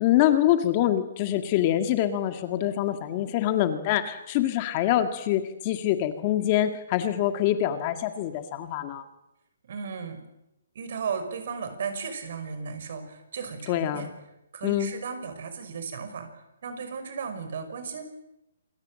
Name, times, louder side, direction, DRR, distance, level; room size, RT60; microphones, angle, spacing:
voice 1, 0.0-9.0 13.7-14.1 14.6-14.9, left 12 dB, 25° left, 9 dB, 1.8 m, -25 dB
voice 2, 9.7-10.2 10.7-14.1 14.5-16.3 16.6-18.0, right 6 dB, 50° right, 9 dB, 5.7 m, -35 dB
27.5 x 22.0 x 7.7 m, 0.90 s
hypercardioid pair, 165°, 0 cm